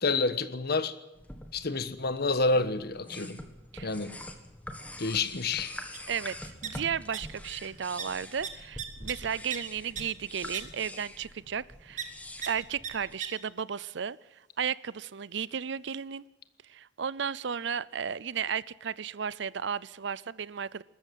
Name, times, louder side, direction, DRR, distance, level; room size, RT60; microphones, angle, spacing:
voice 1, 0.0-1.0 1.5-3.4 3.8-4.2 5.0-5.7, left 3 dB, 60° left, 1.3 m, -28 dB
sound 1, 1.1-13.1, left 1 dB, 10° left, 1.8 m, -45 dB
sound 2, 5.9-6.0 6.3-7.2 7.5-7.7 8.0-8.1 8.4-9.6 10.0-10.1 10.5-10.6 12.0-12.1 12.4-12.5 12.8-12.9 13.2-13.3, right 8 dB, 40° right, 2.1 m, -37 dB
voice 2, 6.1-12.1 12.4-16.2 16.6-20.8, right 7 dB, 70° right, 0.6 m, -34 dB
20.5 x 14.0 x 9.4 m
head